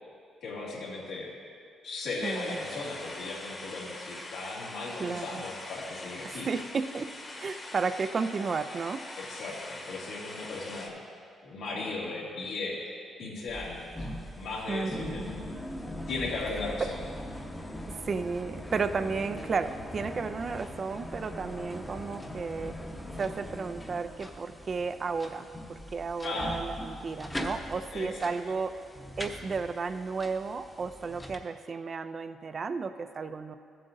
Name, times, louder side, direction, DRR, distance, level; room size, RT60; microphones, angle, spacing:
voice 1, 0.4-1.3 1.8-6.5 9.2-11.0 11.4-12.9 13.2-13.9 14.4-15.2 16.1-17.0 26.2-26.6 27.9-28.3, left 3 dB, 80° left, -5 dB, 2.2 m, -36 dB
sound 1, 2.2-10.9, left 2 dB, 30° left, 1.2 m, -43 dB
voice 2, 2.2-2.6 5.0-5.4 6.2-9.1 14.7-15.3 16.8-16.9 18.0-22.8 23.2-28.8 29.2-33.6, right 4 dB, 45° right, 10 dB, 0.4 m, -33 dB
sound 2, 13.5-31.4, left 1 dB, 10° left, 0.8 m, -41 dB
14.0 x 7.6 x 2.7 m, 2.3 s
cardioid pair, 95°, 0 cm